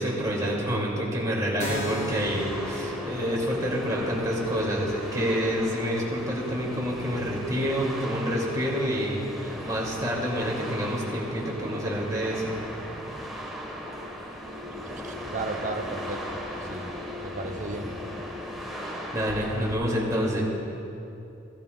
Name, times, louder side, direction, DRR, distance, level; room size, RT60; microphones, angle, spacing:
voice 1, 0.0-12.6 19.1-20.4, equal, 20° right, -4 dB, 2.3 m, -28 dB
Keyboard (musical), 1.6-8.9, equal, 35° left, 1.3 m, -40 dB
sound 1, 1.7-19.7, equal, ahead, 1.2 m, -37 dB
voice 2, 15.0-16.2 16.7-16.8 17.2-18.0, right 3 dB, 40° right, 4 dB, 0.7 m, -33 dB
16.5 x 12.0 x 2.3 m, 2.7 s
head